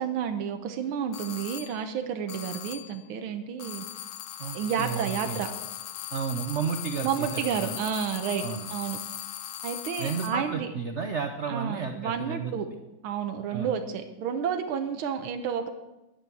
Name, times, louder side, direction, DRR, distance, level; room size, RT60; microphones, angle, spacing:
voice 1, 0.0-3.9 4.5-5.5 7.0-8.4 8.7-9.0 9.6-10.7 11.5-12.7 13.0-15.7, right 7 dB, 85° right, 7 dB, 1.7 m, -30 dB
sound 1, 1.1-1.8 2.3-3.0 3.6-10.5, left 12 dB, 80° left, 1.5 m, -39 dB
voice 2, 4.4-5.4 6.1-7.7 8.4-8.7 10.0-12.5 13.5-13.7, right 6 dB, 70° right, 6 dB, 0.6 m, -32 dB
10.5 x 9.9 x 6.0 m, 0.99 s
omnidirectional pair, 2.3 m